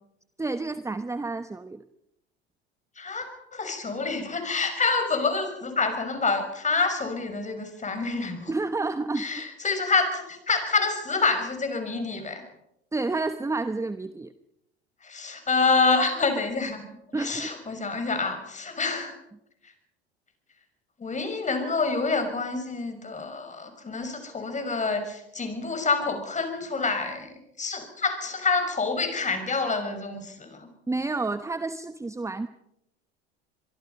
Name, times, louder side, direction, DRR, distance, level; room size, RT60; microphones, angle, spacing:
voice 1, 0.4-1.8 8.5-9.4 12.9-14.3 17.1-17.5 30.9-32.5, right 3 dB, 10° right, 12 dB, 1.0 m, -30 dB
voice 2, 3.0-8.5 9.2-12.4 15.0-16.8 17.2-19.2 21.0-27.3 27.6-30.7, left 4 dB, 20° left, 7 dB, 6.1 m, -27 dB
25.5 x 23.5 x 5.5 m, 0.81 s
hypercardioid pair, 75°, 32 cm